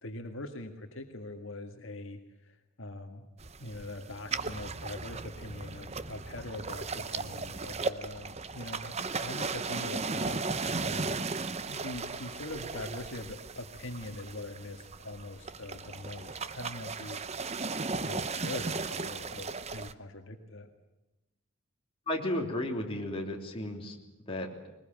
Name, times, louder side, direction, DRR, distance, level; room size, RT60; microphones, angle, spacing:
voice 1, 0.0-3.3 3.6-11.2 11.5-17.7 18.0-20.7, left 2 dB, 65° left, 5 dB, 1.8 m, -43 dB
sound 1, 3.4-19.9, right 4 dB, 30° right, 0.7 m, -36 dB
voice 2, 22.1-24.0 24.3-24.5, left 1 dB, 25° left, 0 dB, 3.3 m, -33 dB
21.5 x 20.5 x 9.0 m, 1.0 s
head